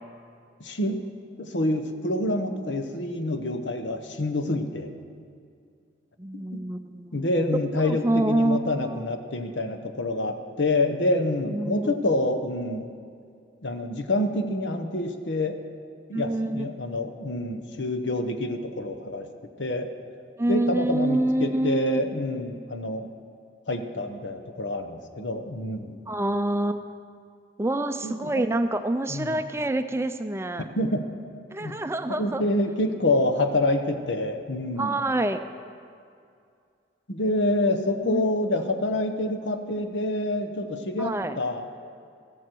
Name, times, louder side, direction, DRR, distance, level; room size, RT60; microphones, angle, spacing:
voice 1, 0.6-1.0 1.4-4.9 6.3-6.6 7.1-12.9 13.6-15.6 16.1-19.3 19.6-19.9 20.5-23.1 23.7-26.0 28.0-28.1 29.1-29.4 30.6-31.0 31.6-31.7 32.1-35.0 37.1-41.8, left 1 dB, 85° left, 7 dB, 1.0 m, -27 dB
voice 2, 6.2-7.3 7.8-9.0 11.5-12.0 16.1-16.7 20.4-22.0 26.1-27.0 27.6-30.7 31.5-32.4 34.8-35.4 38.0-38.3 41.0-41.4, right 1 dB, 15° right, 9 dB, 0.4 m, -26 dB
14.5 x 14.5 x 4.6 m, 2.3 s
head